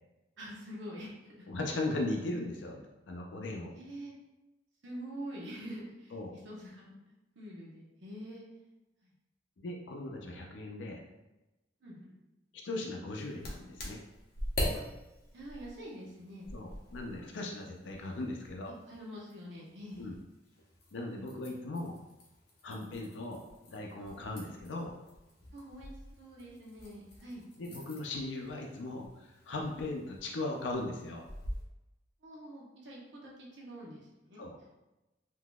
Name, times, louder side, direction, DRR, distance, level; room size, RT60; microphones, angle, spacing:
voice 1, 0.4-1.5 3.7-4.1 4.8-8.4 11.8-12.1 14.7-14.8 15.3-16.4 16.9-17.0 18.9-20.1 25.5-27.4 32.2-34.4, equal, 80° right, -4 dB, 0.9 m, -46 dB
voice 2, 1.5-3.7 6.1-6.3 9.6-11.0 12.6-14.0 16.5-18.7 20.0-20.2 20.9-22.0 22.6-24.9 27.6-31.3 34.4-34.6, left 2 dB, 90° left, 1 dB, 0.5 m, -38 dB
sound 1, 13.2-31.6, left 1 dB, 60° left, 0.8 m, -44 dB
3.8 x 2.7 x 2.3 m, 1.0 s
head